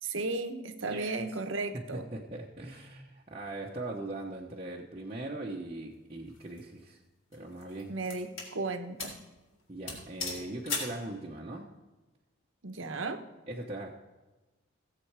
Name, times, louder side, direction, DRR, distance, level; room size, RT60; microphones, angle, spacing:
voice 1, 0.0-2.1 7.9-9.2 12.6-13.2, right 3 dB, 70° right, 7 dB, 1.1 m, -35 dB
voice 2, 0.9-1.2 1.7-7.0 7.3-7.9 9.7-11.7 13.5-13.9, right 2 dB, 30° right, -3 dB, 1.0 m, -40 dB
sound 1, 6.3-6.6 7.3-8.5 9.0-9.2 9.5-9.6 9.9-11.0, left 4 dB, 70° left, 3.6 m, -38 dB
16.5 x 7.7 x 4.8 m, 1.2 s
head